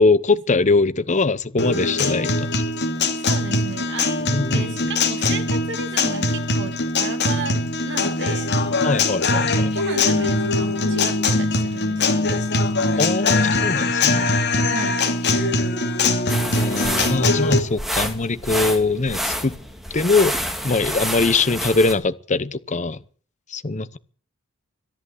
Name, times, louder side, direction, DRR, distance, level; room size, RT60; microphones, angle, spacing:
voice 1, 0.0-2.6 4.3-4.8 8.8-9.7 13.0-14.3 16.5-19.6 19.9-20.3 20.6-23.0 23.5-24.0, left 3 dB, 30° left, 0.8 m, -22 dB
Guitar, 1.6-17.6, left 2 dB, 50° left, 2.6 m, -21 dB
voice 2, 3.2-8.5 9.7-12.5 14.7-15.0, right 3 dB, 55° right, 2.2 m, -34 dB
sound 1, 16.3-21.9, equal, ahead, 2.1 m, -28 dB
13.5 x 11.0 x 8.0 m
head